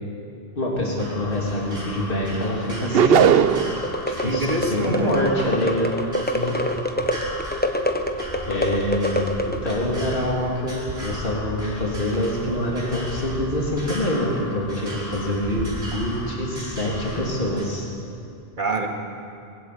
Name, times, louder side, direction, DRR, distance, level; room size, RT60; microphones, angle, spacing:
voice 1, 0.6-3.3 4.2-5.9 8.5-17.9, left 1 dB, 60° left, -3 dB, 3.5 m, -25 dB
sound 1, 1.0-17.7, equal, 85° right, 5.8 m, -35 dB
sound 2, 2.9-3.8, right 8 dB, 70° right, 0.9 m, -16 dB
sound 3, 3.8-9.8, equal, 10° left, 1.0 m, -26 dB
voice 2, 4.1-5.1 6.3-6.6 18.6-18.9, right 1 dB, 50° right, 2 dB, 2.3 m, -26 dB
22.0 x 16.0 x 8.6 m, 2.6 s
omnidirectional pair, 1.0 m